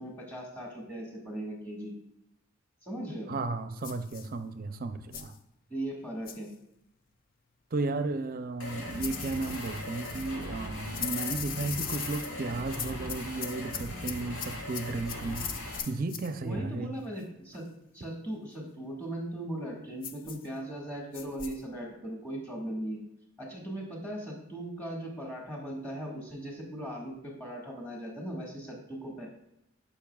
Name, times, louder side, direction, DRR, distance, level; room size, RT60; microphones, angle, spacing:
voice 1, 0.0-1.9 2.8-3.3 5.7-6.5 16.4-17.7 17.9-23.0 23.4-29.3, right 1 dB, 10° left, -2 dB, 1.7 m, -38 dB
voice 2, 3.3-5.3 7.7-15.5 15.9-16.9, right 3 dB, 45° right, 10 dB, 0.5 m, -34 dB
sound 1, 3.8-4.3 5.1-5.4 6.3-6.5 9.0-10.3 10.9-12.3 12.7-16.3 20.0-20.5 21.1-21.6, left 8 dB, 45° left, 0.5 m, -39 dB
sound 2, 8.6-15.8, left 1 dB, 85° left, 1.7 m, -39 dB
12.0 x 5.5 x 2.3 m, 0.84 s
head